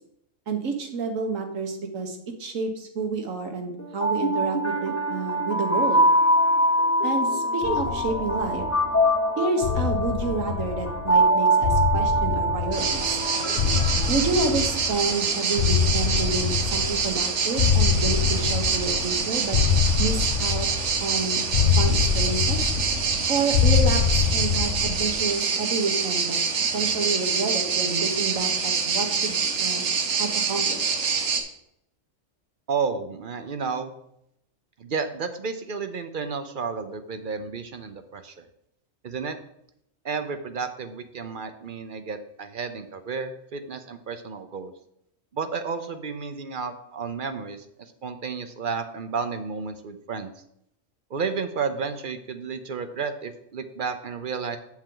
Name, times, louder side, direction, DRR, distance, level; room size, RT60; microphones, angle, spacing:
voice 1, 0.5-6.0 7.0-8.6 9.4-13.2 14.1-19.6 20.0-20.7 21.0-21.4 21.8-22.6 23.3-26.4 26.7-29.8 30.1-30.9, right 4 dB, 85° right, 4 dB, 1.6 m, -29 dB
sound 1, 3.8-14.9, right 1 dB, 15° left, 0.6 m, -24 dB
sound 2, 7.6-9.0 9.6-11.2 11.6-13.2 13.6-15.2 15.6-17.2 17.6-19.2 19.5-21.1 21.5-23.2 23.5-25.2, left 7 dB, 55° left, 0.8 m, -24 dB
sound 3, 12.7-31.4, right 5 dB, 65° right, 1.2 m, -26 dB
voice 2, 32.7-33.9 34.8-38.5 39.0-39.4 40.0-44.7 45.3-50.3 51.1-54.6, right 5 dB, 50° right, 9 dB, 0.7 m, -32 dB
7.8 x 7.3 x 3.8 m, 0.75 s
omnidirectional pair, 1.3 m